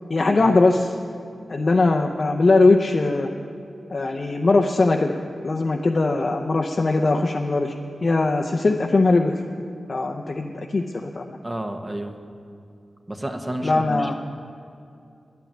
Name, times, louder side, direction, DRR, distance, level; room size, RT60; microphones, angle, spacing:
voice 1, 0.1-0.9 1.5-3.3 3.9-5.1 5.4-7.7 8.0-9.3 9.9-11.4 13.6-14.1, left 3 dB, 40° left, 3 dB, 0.6 m, -20 dB
voice 2, 11.4-12.1 13.1-14.1, right 1 dB, 20° right, 5 dB, 1.0 m, -30 dB
10.5 x 9.2 x 10.0 m, 2.5 s
wide cardioid pair, 140°, 0 cm